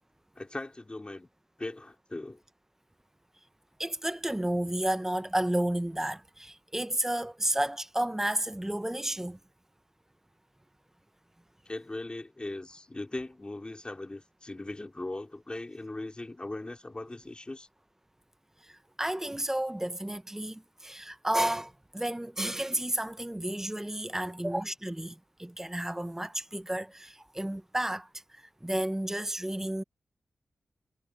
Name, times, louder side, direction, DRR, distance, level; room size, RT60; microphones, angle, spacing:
voice 1, 0.4-1.3 1.6-2.4 11.7-17.7, left 2 dB, 25° left, 3.7 m, -39 dB
voice 2, 3.8-9.4 18.6-29.8, right 1 dB, 10° right, 0.9 m, -32 dB
cardioid pair, 60°, 4 cm